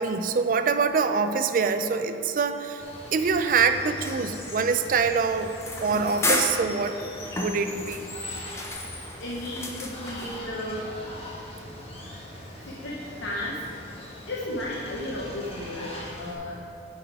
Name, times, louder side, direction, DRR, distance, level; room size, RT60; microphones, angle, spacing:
voice 1, 0.0-2.8 3.1-5.5 5.8-7.0 7.4-8.0, right 5 dB, 45° right, 9 dB, 0.3 m, -24 dB
Water, 2.8-16.4, left 1 dB, 30° left, 1.1 m, -41 dB
sound 1, 4.0-10.4, left 2 dB, 15° left, 0.5 m, -33 dB
voice 2, 9.2-10.9 12.7-13.5 14.3-16.7, left 1 dB, 75° left, -5 dB, 0.9 m, -34 dB
8.5 x 5.4 x 4.7 m, 2.8 s
head